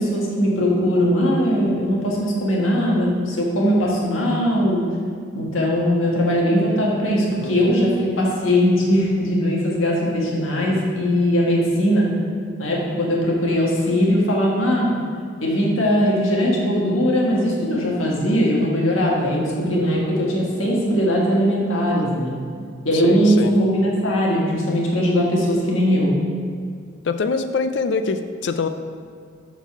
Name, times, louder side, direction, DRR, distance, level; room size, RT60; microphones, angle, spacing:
voice 1, 0.0-4.8 5.3-12.1 12.6-15.0 15.4-22.4 22.8-26.1, equal, 85° left, -3 dB, 1.5 m, -20 dB
voice 2, 22.9-23.5 27.0-28.7, left 4 dB, 60° left, 9 dB, 0.4 m, -24 dB
7.1 x 4.0 x 5.7 m, 2.2 s
head